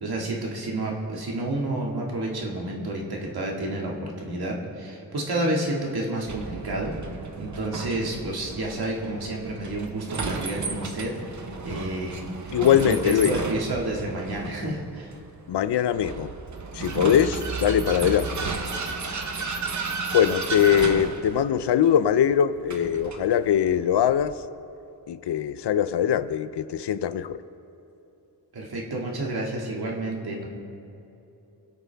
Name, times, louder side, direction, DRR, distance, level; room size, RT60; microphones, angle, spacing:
voice 1, 0.0-7.0 7.4-15.1 20.7-20.8 28.5-30.5, right 1 dB, 60° right, -2 dB, 2.1 m, -30 dB
Vehicle, 6.3-24.3, right 4 dB, 45° right, 0.9 m, -34 dB
voice 2, 12.5-13.3 15.5-16.3 16.7-18.3 20.1-24.3 25.1-27.4, left 9 dB, 75° left, 13 dB, 0.6 m, -22 dB
24.5 x 8.3 x 3.5 m, 2.9 s
wide cardioid pair, 135°, 41 cm